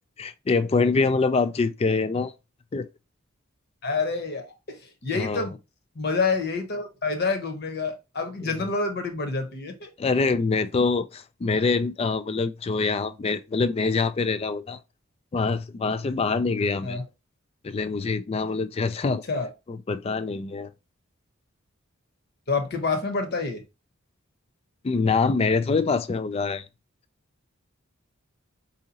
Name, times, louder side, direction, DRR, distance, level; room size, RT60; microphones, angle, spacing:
voice 1, 0.2-2.3 2.7-2.9 5.1-5.5 8.4-8.7 10.0-14.8 15.3-17.0 17.6-19.2 19.7-20.7 24.8-26.7, left 4 dB, 30° left, 0.3 m, -25 dB
voice 2, 3.8-5.5 5.9-9.9 16.8-17.0 19.3-19.5 22.5-23.6, left 4 dB, 50° left, 1.0 m, -28 dB
4.8 x 2.7 x 2.8 m
head